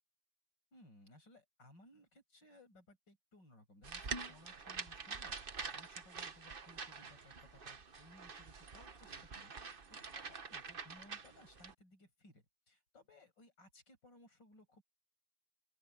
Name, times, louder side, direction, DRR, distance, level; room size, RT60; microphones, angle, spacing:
voice 1, 0.7-14.8, left 1 dB, 80° left, 7.8 m, -62 dB
sound 1, 3.8-11.7, right 5 dB, 35° right, 1.2 m, -46 dB
open air
omnidirectional pair, 1.9 m